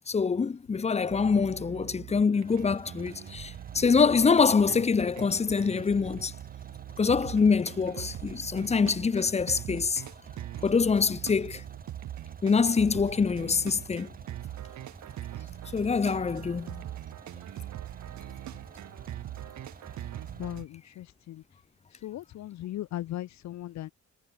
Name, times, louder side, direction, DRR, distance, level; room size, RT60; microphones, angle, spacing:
voice 1, 0.1-6.3 7.0-10.0 10.6-11.6 12.4-14.1 15.7-16.8, left 5 dB, 20° left, 0.7 m, -25 dB
sound 1, 1.1-20.7, right 13 dB, 70° right, 1.2 m, -42 dB
sound 2, 2.4-20.6, right 5 dB, 30° right, 1.6 m, -50 dB
voice 2, 20.4-21.4 22.0-23.9, left 14 dB, 65° left, 0.7 m, -38 dB
cardioid pair, 90°, 30 cm